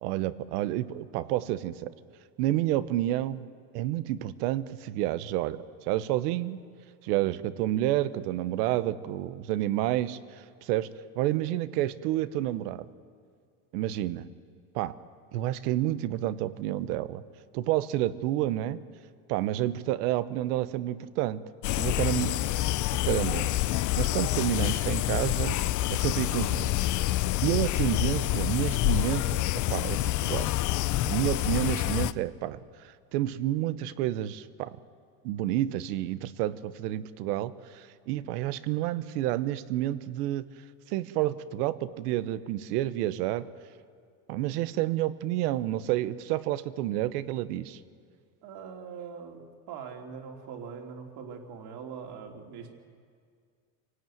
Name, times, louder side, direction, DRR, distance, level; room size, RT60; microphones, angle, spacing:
voice 1, 0.0-1.9 2.4-3.5 3.7-6.6 7.0-10.9 11.1-12.8 13.7-14.3 14.7-14.9 15.3-17.2 17.5-18.8 19.3-21.4 21.8-22.5 23.0-25.6 25.9-26.7 27.4-29.4 29.7-30.5 31.0-34.7 35.2-40.5 40.9-43.5 44.3-47.8, right 14 dB, 80° right, 14 dB, 1.2 m, -29 dB
sound 1, 21.6-32.1, left 16 dB, 40° left, 0.6 m, -27 dB
voice 2, 48.4-52.7, right 6 dB, 55° right, 2 dB, 3.4 m, -42 dB
25.0 x 17.5 x 9.3 m, 2.1 s
supercardioid pair, 110°, 47 cm